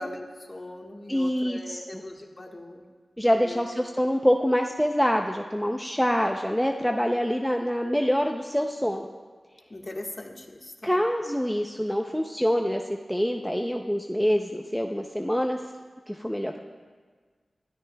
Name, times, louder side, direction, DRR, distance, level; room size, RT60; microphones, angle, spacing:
voice 1, 0.0-2.9 3.3-3.6 9.7-11.0 16.4-16.6, left 1 dB, 35° left, 1 dB, 1.4 m, -40 dB
voice 2, 1.1-1.8 3.2-9.1 10.8-12.8 13.1-15.6 16.1-16.6, equal, 5° left, 3 dB, 0.5 m, -25 dB
21.0 x 13.0 x 2.3 m, 1.5 s
wide cardioid pair, 70°, 0 cm